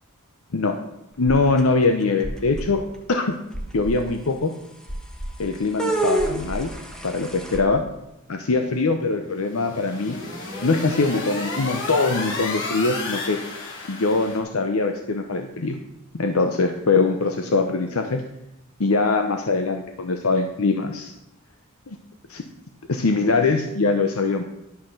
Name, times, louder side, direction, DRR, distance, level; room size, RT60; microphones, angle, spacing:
voice 1, 1.2-2.8 3.1-3.3 3.7-4.5 5.4-6.7 7.0-7.8 8.3-10.2 10.6-13.4 13.9-15.8 16.1-18.2 18.8-21.1 21.9-22.0 22.3-22.4 22.9-24.4, left 3 dB, 80° left, 6 dB, 0.8 m, -22 dB
sound 1, 1.3-1.8 2.2-2.7 3.1-3.2 3.5-3.9 4.9-5.3 5.8-7.6, right 2 dB, 5° left, 1.3 m, -27 dB
sound 2, 9.4-14.4, left 3 dB, 60° left, 2.6 m, -32 dB
11.5 x 5.8 x 6.5 m, 0.87 s
head